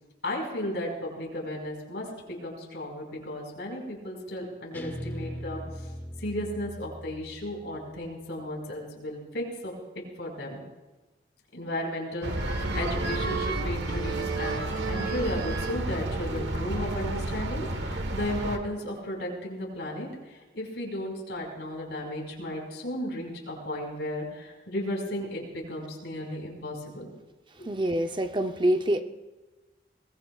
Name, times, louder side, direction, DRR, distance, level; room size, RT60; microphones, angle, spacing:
voice 1, 0.2-5.9 6.2-9.7 10.2-10.6 11.5-27.1, left 1 dB, 90° left, -1 dB, 4.9 m, -34 dB
Guitar, 4.7-7.9, equal, 10° left, 0.7 m, -39 dB
sound 1, 12.2-18.6, right 2 dB, 80° right, 1.3 m, -30 dB
voice 2, 27.6-29.0, right 1 dB, 25° right, 7 dB, 0.6 m, -26 dB
22.5 x 20.5 x 2.4 m, 1.2 s
head